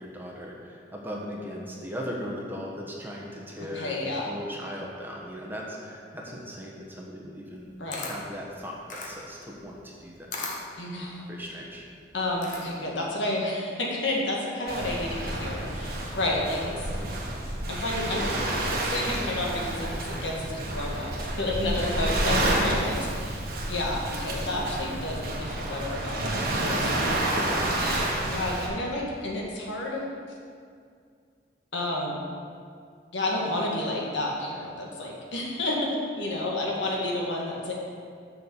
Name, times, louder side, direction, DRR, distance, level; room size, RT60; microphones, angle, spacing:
voice 1, 0.0-7.7 8.0-10.6 11.3-11.8 16.6-16.7 22.0-22.7 27.5-28.1, equal, 10° right, -3 dB, 1.2 m, -38 dB
voice 2, 3.7-4.3 7.8-8.1 10.8-11.2 12.1-16.7 17.7-18.3 18.8-23.4 23.7-26.8 27.7-30.0 31.7-32.2 33.1-35.8 36.2-37.7, left 1 dB, 80° left, -2 dB, 1.8 m, -31 dB
Camera, 7.5-13.0, left 3 dB, 40° left, 1.1 m, -39 dB
Waves surf, 14.7-28.7, right 1 dB, 55° right, 1.4 m, -29 dB
6.7 x 6.5 x 7.0 m, 2.2 s
head